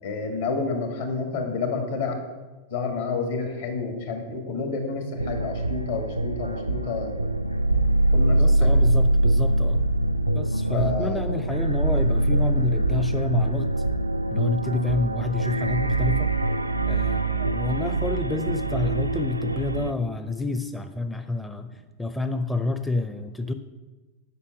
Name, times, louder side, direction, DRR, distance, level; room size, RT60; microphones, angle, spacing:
voice 1, 0.0-2.2 2.7-7.1 8.1-9.1 10.7-11.2, left 4 dB, 65° left, 3 dB, 2.0 m, -29 dB
sound 1, 5.2-19.9, right 2 dB, 85° right, 0.3 m, -23 dB
voice 2, 8.4-9.8 10.3-13.8 14.3-16.3 16.9-23.5, left 3 dB, 5° left, 8 dB, 0.5 m, -29 dB
8.2 x 5.6 x 7.0 m, 1.2 s
figure-of-eight pair, 90°, 0 cm